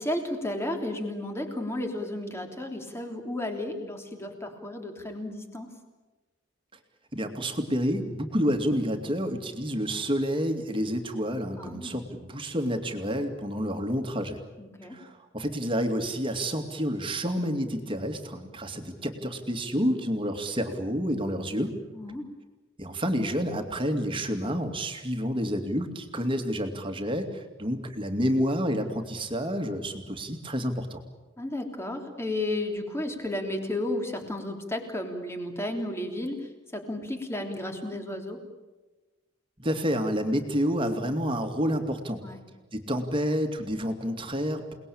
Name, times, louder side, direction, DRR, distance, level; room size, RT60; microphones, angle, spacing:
voice 1, 0.0-5.7 11.6-11.9 14.6-15.0 21.9-22.3 31.4-36.4 36.7-38.4 42.2-42.4, left 1 dB, 15° left, 3 dB, 3.2 m, -33 dB
voice 2, 7.1-14.4 14.9-21.7 22.8-31.0 39.6-42.2 42.7-44.7, equal, 25° right, 5 dB, 2.5 m, -29 dB
29.0 x 20.0 x 8.8 m, 1.2 s
head